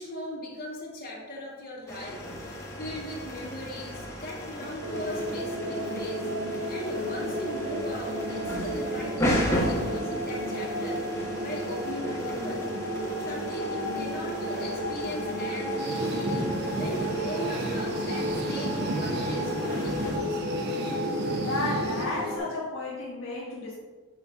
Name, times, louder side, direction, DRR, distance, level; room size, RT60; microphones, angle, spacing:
voice 1, 0.0-12.6 13.2-20.2, left 1 dB, 45° left, -4 dB, 2.0 m, -39 dB
sound 1, 1.9-20.2, equal, 15° left, 1.3 m, -35 dB
sound 2, 4.8-22.4, equal, 70° right, 1.2 m, -32 dB
sound 3, 15.8-22.4, right 1 dB, 50° right, 0.9 m, -33 dB
voice 2, 21.4-23.8, left 2 dB, 65° left, -5 dB, 1.3 m, -32 dB
7.1 x 4.3 x 5.2 m, 1.3 s
head